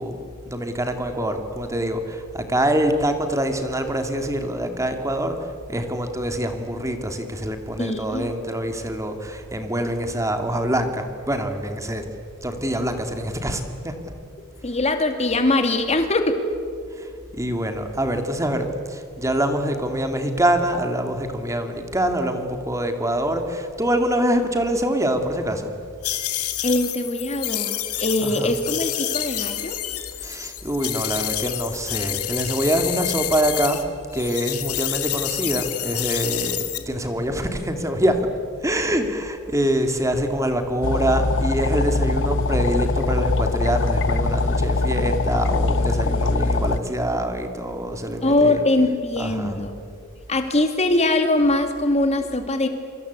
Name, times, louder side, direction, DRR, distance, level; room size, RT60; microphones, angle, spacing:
voice 1, 0.0-12.0 12.4-13.9 16.9-25.7 28.2-28.6 30.2-33.8 34.1-38.2 38.6-48.9 49.2-49.6, right 1 dB, 15° right, 6 dB, 2.6 m, -25 dB
voice 2, 7.8-8.3 14.6-16.4 26.6-29.8 48.2-49.8 50.3-52.7, left 2 dB, 30° left, 6 dB, 2.6 m, -22 dB
sound 1, 26.0-33.8 34.1-36.8, left 13 dB, 80° left, 2.3 m, -28 dB
sound 2, 40.8-46.8, left 2 dB, 55° left, 1.0 m, -22 dB
28.0 x 25.0 x 8.4 m, 2.2 s
head